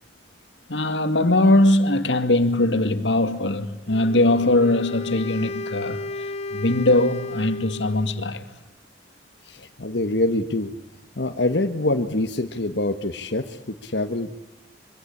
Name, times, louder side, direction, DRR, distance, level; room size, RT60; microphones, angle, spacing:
voice 1, 0.7-6.0 6.5-8.5, left 2 dB, 85° left, 2.2 m, -20 dB
Wind instrument woodwind instrument, 3.9-8.2, left 3 dB, 35° left, 1.3 m, -33 dB
voice 2, 9.4-10.7 11.2-14.3, left 2 dB, 65° left, 1.5 m, -25 dB
25.5 x 24.5 x 8.5 m
head